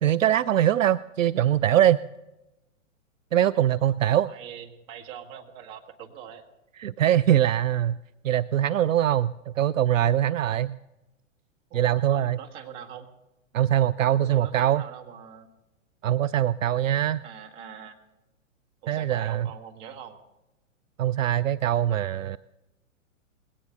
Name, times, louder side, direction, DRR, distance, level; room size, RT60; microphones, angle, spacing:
voice 1, 0.0-2.0 3.3-4.3 6.8-8.0 8.2-10.8 11.7-12.4 13.5-14.8 16.0-17.2 18.9-19.5 21.0-22.4, right 11 dB, 75° right, 16 dB, 0.5 m, -22 dB
voice 2, 4.3-6.4 11.7-13.1 14.3-15.5 17.2-18.0 18.8-20.2, right 8 dB, 40° right, 4 dB, 2.0 m, -43 dB
20.0 x 17.5 x 3.9 m, 0.98 s
figure-of-eight pair, 110°, 39 cm